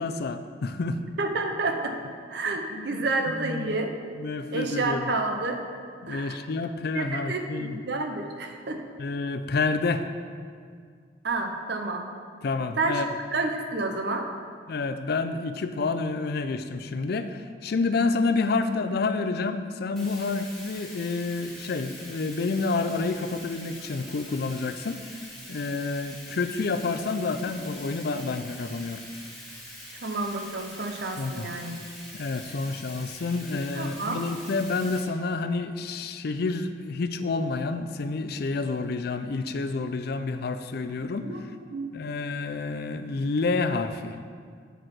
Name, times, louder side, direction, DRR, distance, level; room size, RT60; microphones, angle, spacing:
voice 1, 0.0-1.0 2.7-3.1 3.4-3.8 4.1-5.1 6.0-7.8 9.0-10.1 12.4-13.1 14.7-25.2 25.5-29.0 31.2-31.5 32.1-41.3 41.9-44.2, left 3 dB, 60° left, 9 dB, 0.4 m, -29 dB
voice 2, 1.2-2.0 2.3-3.9 4.5-5.6 6.1-6.4 6.9-8.8 11.2-12.1 12.8-13.0 13.3-14.3 29.9-31.8 33.7-34.2 41.2-41.4 41.7-42.0, right 3 dB, 65° right, 4 dB, 0.8 m, -29 dB
Bathtub (filling or washing), 20.0-35.0, equal, ahead, 1.9 m, -44 dB
8.0 x 4.8 x 5.9 m, 2.1 s
head